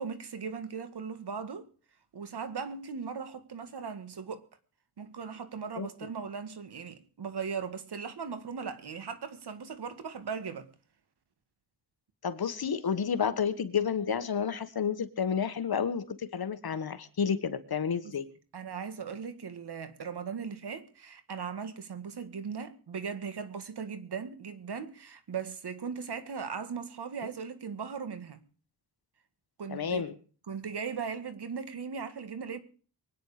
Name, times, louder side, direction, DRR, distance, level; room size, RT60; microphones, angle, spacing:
voice 1, 0.0-1.7 2.1-4.5 5.0-10.7 18.0-18.1 18.5-28.4 29.6-30.0 30.5-32.6, right 6 dB, 80° right, 1.9 m, -38 dB
voice 2, 12.2-18.3 29.7-30.1, left 7 dB, 65° left, 1.5 m, -30 dB
23.5 x 9.6 x 5.0 m
wide cardioid pair, 100°, 39 cm